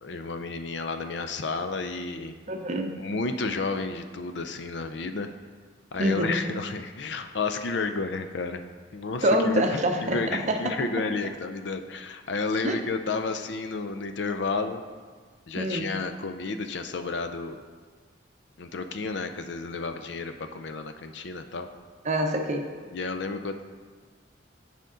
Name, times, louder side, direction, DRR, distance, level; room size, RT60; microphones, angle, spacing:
voice 1, 0.0-2.4 3.0-5.3 5.9-8.6 8.9-14.8 15.5-17.6 18.6-21.7 22.9-23.6, left 3 dB, 65° left, 8 dB, 0.5 m, -31 dB
voice 2, 2.5-2.9 6.0-6.4 9.2-10.8 12.6-12.8 15.5-15.9 22.0-22.7, right 1 dB, 40° right, 4 dB, 0.7 m, -26 dB
10.0 x 5.2 x 3.8 m, 1.5 s
head